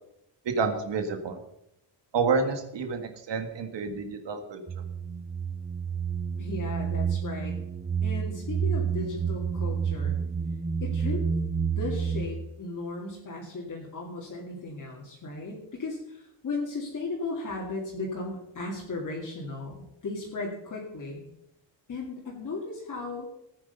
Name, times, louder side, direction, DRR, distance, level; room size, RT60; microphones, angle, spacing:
voice 1, 0.5-1.4 2.1-4.8, right 4 dB, 75° right, 6 dB, 1.7 m, -29 dB
sound 1, 4.7-12.3, right 6 dB, 20° right, 0.4 m, -29 dB
voice 2, 6.4-7.6 8.0-10.2 10.8-11.4 11.8-21.3 21.9-23.3, left 3 dB, 45° left, -3 dB, 2.6 m, -36 dB
15.5 x 9.5 x 5.4 m, 0.81 s
wide cardioid pair, 180°, 43 cm